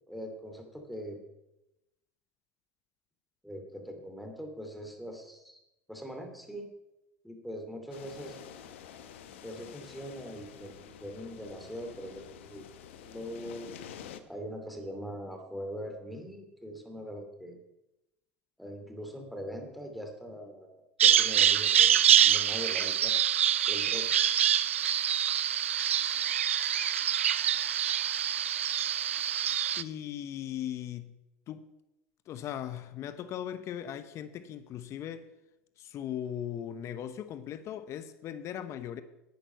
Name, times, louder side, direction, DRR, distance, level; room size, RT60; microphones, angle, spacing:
voice 1, 0.1-1.2 3.4-5.6 5.9-6.7 7.2-8.4 9.4-12.7 13.0-13.7 14.3-17.6 18.6-22.0 22.2-23.2 23.7-24.1, equal, ahead, 2.6 m, -42 dB
sound 1, 7.9-14.2, left 9 dB, 75° left, 0.9 m, -48 dB
Bird vocalization bird call bird song, 21.0-29.8, right 9 dB, 85° right, 0.4 m, -25 dB
voice 2, 29.8-31.2 31.5-31.6 32.3-35.3 35.8-39.0, left 10 dB, 45° left, 0.8 m, -38 dB
11.0 x 9.0 x 5.5 m
hypercardioid pair, 80°, 7 cm